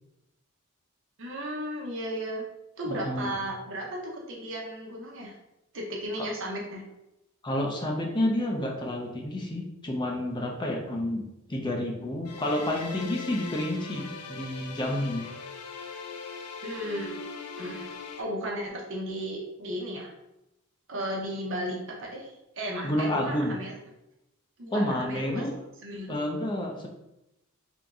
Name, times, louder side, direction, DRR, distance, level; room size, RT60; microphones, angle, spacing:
voice 1, 1.2-2.5 2.8-5.3 5.7-6.8 16.6-17.2 17.6-20.1 20.9-23.8 24.6-25.5 25.8-26.2, equal, 55° right, -2 dB, 0.7 m, -35 dB
voice 2, 2.9-3.3 6.2-6.3 7.4-11.2 11.5-15.2 22.8-23.5 24.7-25.6 26.1-26.9, left 1 dB, 20° left, 1 dB, 0.5 m, -29 dB
sound 1, 12.3-18.2, left 5 dB, 80° left, 0.5 m, -40 dB
3.0 x 2.6 x 3.5 m, 0.89 s
head